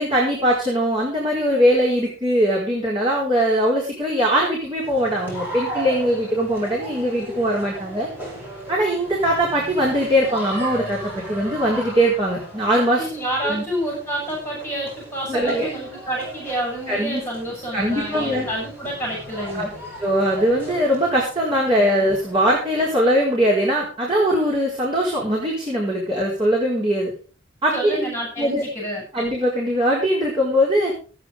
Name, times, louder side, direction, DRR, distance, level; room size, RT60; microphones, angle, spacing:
voice 1, 0.0-8.1 8.7-13.1 13.4-13.6 15.3-15.7 16.9-17.2 17.7-18.5 19.5-19.7 20.0-27.1 27.6-28.0 28.4-28.6 29.1-30.9, equal, 25° right, -4 dB, 4.4 m, -21 dB
sound 1, 4.8-23.0, right 1 dB, 10° right, 7.7 m, -36 dB
voice 2, 13.0-19.7 21.7-21.8 27.7-29.0, right 1 dB, 15° left, -3 dB, 6.5 m, -28 dB
16.0 x 9.3 x 5.0 m, 0.38 s
head